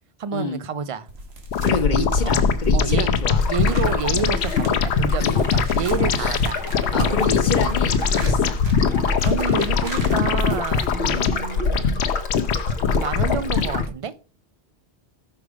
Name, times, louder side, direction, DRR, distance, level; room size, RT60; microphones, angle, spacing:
voice 1, 0.2-1.1 2.2-2.5 2.7-3.1 3.5-6.6 6.9-7.1 8.2-8.4 9.2-12.1 13.0-14.1, right 6 dB, 50° right, 0.4 m, -29 dB
sound 1, 1.1-11.2, right 2 dB, 75° right, 1.6 m, -38 dB
sound 2, 1.5-13.9, left 6 dB, 85° left, 0.9 m, -21 dB
voice 2, 1.6-3.4 5.2-5.4 6.1-6.4 6.9-8.6 11.0-11.3, left 4 dB, 45° left, 1.2 m, -28 dB
sound 3, 3.4-13.9, left 3 dB, 70° left, 1.2 m, -32 dB
5.7 x 4.8 x 4.9 m
omnidirectional pair, 1.1 m